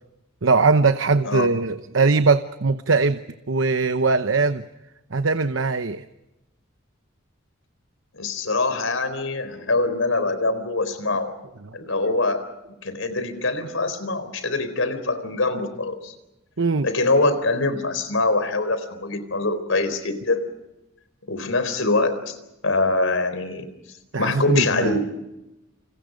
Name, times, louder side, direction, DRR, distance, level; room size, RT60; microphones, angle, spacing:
voice 1, 0.4-3.2 3.5-4.6 5.1-6.0 16.6-16.9 24.1-25.0, right 4 dB, 70° right, 10 dB, 0.9 m, -20 dB
voice 2, 8.1-11.3 11.7-12.4 12.8-16.1 16.8-20.5 21.3-22.4 22.6-23.7 24.1-25.0, left 2 dB, 85° left, 12 dB, 4.2 m, -24 dB
29.0 x 28.0 x 5.2 m, 0.95 s
head